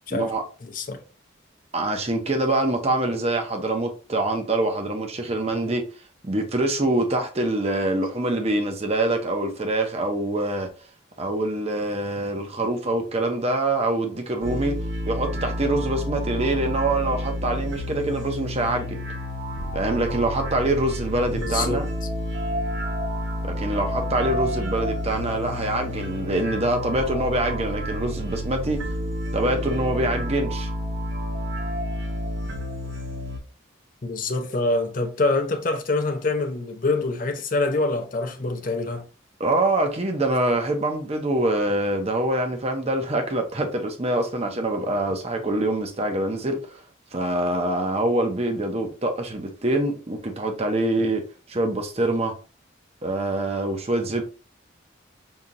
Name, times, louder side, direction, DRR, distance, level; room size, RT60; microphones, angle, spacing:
voice 1, 0.1-0.4 1.7-5.8 6.2-10.7 11.2-14.8 15.1-19.0 19.7-21.9 23.6-28.8 29.3-30.7 39.4-46.8 47.1-51.2 51.5-52.3 53.0-54.2, right 1 dB, 30° right, 0.7 m, -25 dB
voice 2, 0.6-1.0 21.3-21.8 34.0-39.1, left 2 dB, 45° left, 0.6 m, -25 dB
sound 1, 14.4-33.4, equal, 75° right, 1.1 m, -30 dB
5.5 x 2.8 x 2.5 m
head